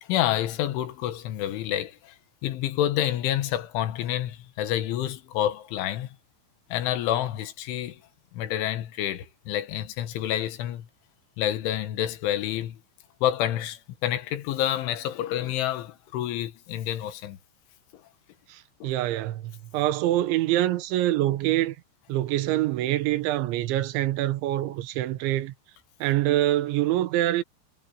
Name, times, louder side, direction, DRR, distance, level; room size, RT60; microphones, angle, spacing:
voice 1, 0.0-2.2 2.4-6.2 6.7-8.0 8.3-10.9 11.4-12.8 13.2-17.4 18.8-18.9, left 12 dB, 90° left, 4.0 m, -28 dB
voice 2, 18.5-21.8 22.1-25.5 26.0-27.4, right 14 dB, 80° right, 3.5 m, -25 dB
omnidirectional pair, 5.3 m